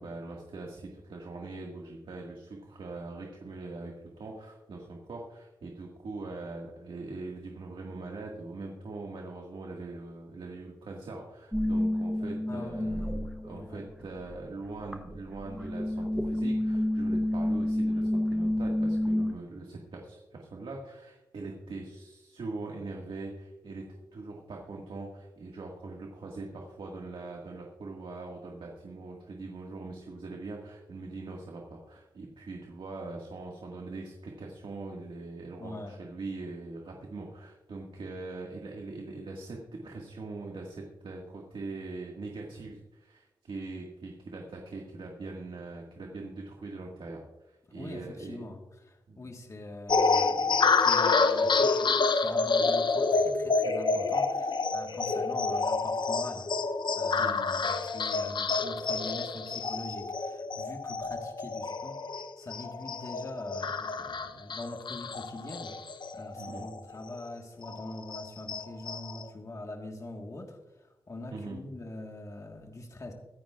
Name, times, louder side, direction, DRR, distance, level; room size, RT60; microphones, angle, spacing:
voice 1, 0.0-23.8 24.1-48.4 49.1-49.3 57.2-57.5 66.3-66.7 71.3-71.6, right 3 dB, 80° right, -1 dB, 1.9 m, -42 dB
sound 1, 11.5-13.8 14.1-19.3, left 1 dB, 5° right, 1.1 m, -29 dB
voice 2, 12.5-13.8 35.6-35.9 47.7-48.6 48.8-56.5 56.9-62.0 62.4-65.7 66.1-73.1, left 2 dB, 35° left, 2 dB, 1.6 m, -42 dB
sound 2, 49.9-66.8 67.1-67.2 67.6-69.2, left 4 dB, 60° left, 0.8 m, -28 dB
23.5 x 10.5 x 2.5 m, 1.0 s
wide cardioid pair, 135°, 9 cm